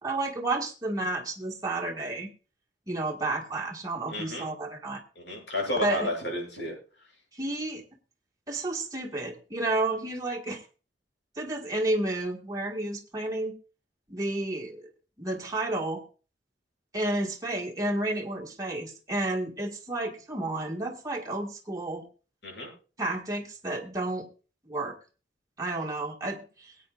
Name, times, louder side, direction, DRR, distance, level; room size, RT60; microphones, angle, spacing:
voice 1, 0.0-2.3 2.9-5.0 5.8-6.1 7.3-7.8 8.5-10.6 11.4-13.5 14.1-14.8 15.2-16.0 16.9-22.0 23.0-24.3 24.7-25.0 25.6-26.7, right 2 dB, 20° right, 0 dB, 1.8 m, -31 dB
voice 2, 4.1-4.5 5.1-6.7 22.4-22.7, left 1 dB, 90° left, -1 dB, 6.8 m, -32 dB
22.0 x 8.8 x 2.5 m, 0.35 s
head